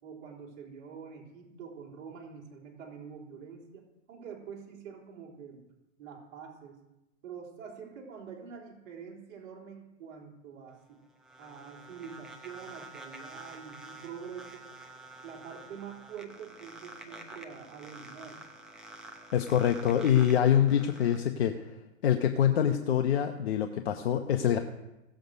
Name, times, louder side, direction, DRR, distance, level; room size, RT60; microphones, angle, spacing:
voice 1, 0.0-5.7 6.0-6.8 7.2-11.0 11.4-14.7 15.2-18.4 24.0-24.6, right 7 dB, 40° right, -3 dB, 3.8 m, -46 dB
sound 1, 10.7-21.2, right 2 dB, ahead, 0.6 m, -48 dB
voice 2, 19.3-21.5 22.0-24.6, left 9 dB, 50° left, 6 dB, 1.0 m, -25 dB
17.0 x 7.8 x 5.2 m, 0.98 s
hypercardioid pair, 140°, 39 cm